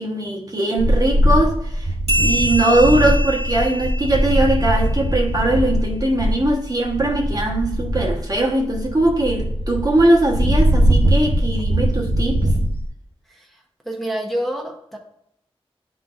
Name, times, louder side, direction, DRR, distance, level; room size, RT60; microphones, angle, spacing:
voice 1, 0.0-1.9 2.2-12.5, right 1 dB, 40° right, 1.2 m, -20 dB
sound 1, 0.8-12.9, equal, 70° right, 0.8 m, -21 dB
sound 2, 2.1-5.1, equal, 85° right, 1.8 m, -26 dB
voice 2, 13.3-15.0, right 1 dB, ahead, 1.0 m, -28 dB
10.5 x 3.9 x 2.5 m
wide cardioid pair, 80°, 10 cm